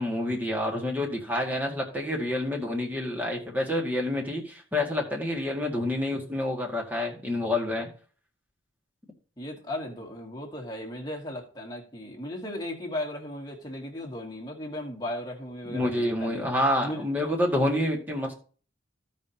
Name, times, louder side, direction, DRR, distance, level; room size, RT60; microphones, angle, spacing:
voice 1, 0.0-7.9 15.7-18.3, left 1 dB, 10° right, 1.8 m, -28 dB
voice 2, 9.4-16.5 16.8-17.1, left 1 dB, 20° left, 1.8 m, -36 dB
15.5 x 5.3 x 2.9 m
head